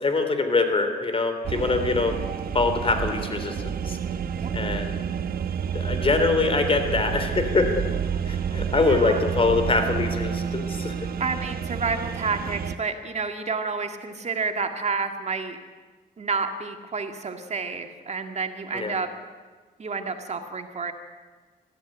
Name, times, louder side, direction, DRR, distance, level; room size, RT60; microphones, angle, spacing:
voice 1, 0.0-2.2 2.5-4.0 4.5-4.9 5.7-7.9 8.2-11.1 18.7-19.0, left 3 dB, 35° left, 7 dB, 3.4 m, -24 dB
sound 1, 1.4-12.8, right 7 dB, 65° right, 1.1 m, -29 dB
voice 2, 8.8-9.2 11.2-15.6 16.2-19.1 19.8-20.9, right 4 dB, 40° right, 6 dB, 2.0 m, -29 dB
21.5 x 15.0 x 9.1 m, 1.4 s
cardioid pair, 90°, 17 cm